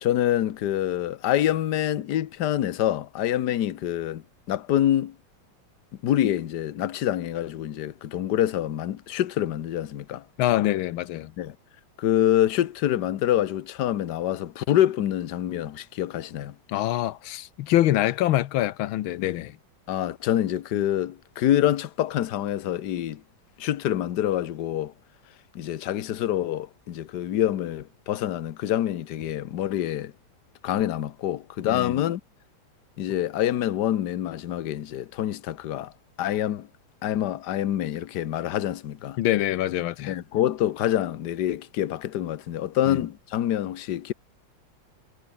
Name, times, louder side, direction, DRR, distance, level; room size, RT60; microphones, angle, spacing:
voice 1, 0.0-5.1 6.0-10.2 11.4-11.5 12.0-16.5 19.9-23.2 23.6-24.9 25.5-30.1 30.6-32.2 33.0-35.9 36.2-36.7 37.0-39.2 40.1-44.1, left 12 dB, 60° left, 1.5 m, -26 dB
voice 2, 10.4-11.3 16.7-19.6 31.6-31.9 39.2-40.1 42.9-43.0, left 14 dB, 85° left, 1.6 m, -25 dB
omnidirectional pair, 2.2 m